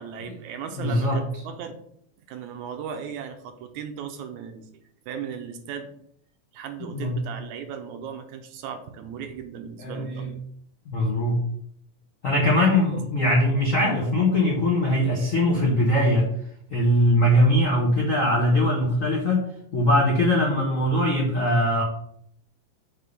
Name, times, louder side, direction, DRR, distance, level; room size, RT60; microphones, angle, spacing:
voice 1, 0.0-1.8 2.3-4.7 5.1-5.9 6.5-10.3, right 7 dB, 80° right, 6 dB, 2.2 m, -36 dB
voice 2, 0.7-1.2 6.8-7.2 9.8-10.3 10.9-11.4 12.2-16.3 16.7-19.5 19.7-21.8, left 1 dB, 75° left, -2 dB, 0.7 m, -21 dB
6.4 x 3.5 x 5.3 m, 0.68 s
omnidirectional pair, 3.4 m